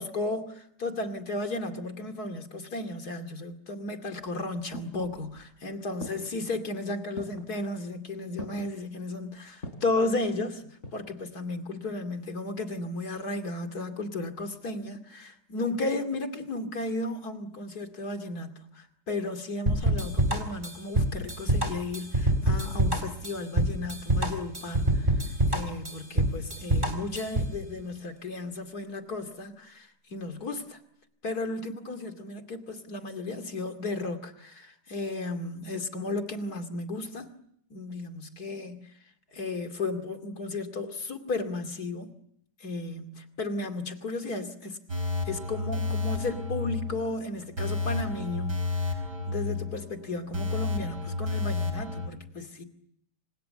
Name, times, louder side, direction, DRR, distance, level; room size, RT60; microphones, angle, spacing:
voice 1, 0.0-30.8 31.2-37.3 37.7-38.9 39.3-42.1 42.6-44.8 45.3-48.9 49.3-52.6, left 2 dB, 70° left, 3.0 m, -34 dB
sound 1, 4.2-5.5 6.0-6.5 7.2-7.6 8.4-8.8 9.6-10.0 10.6-11.2 11.5-11.6, left 1 dB, 45° left, 5.1 m, -42 dB
sound 2, 19.7-27.6, right 1 dB, 30° right, 4.3 m, -26 dB
sound 3, 44.9-52.1, left 3 dB, 90° right, 5.7 m, -31 dB
29.0 x 26.5 x 6.9 m
omnidirectional pair, 1.7 m